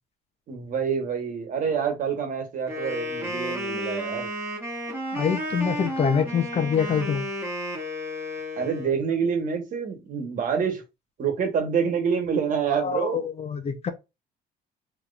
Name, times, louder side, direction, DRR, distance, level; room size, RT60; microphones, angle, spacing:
voice 1, 0.5-4.3 8.6-10.8 11.2-13.2, right 6 dB, 50° right, 1.3 m, -27 dB
Wind instrument woodwind instrument, 2.7-8.9, equal, 15° right, 1.6 m, -32 dB
voice 2, 5.1-7.2 12.7-13.9, left 6 dB, 40° left, 0.6 m, -25 dB
3.6 x 3.0 x 2.5 m
cardioid pair, 110°, 17 cm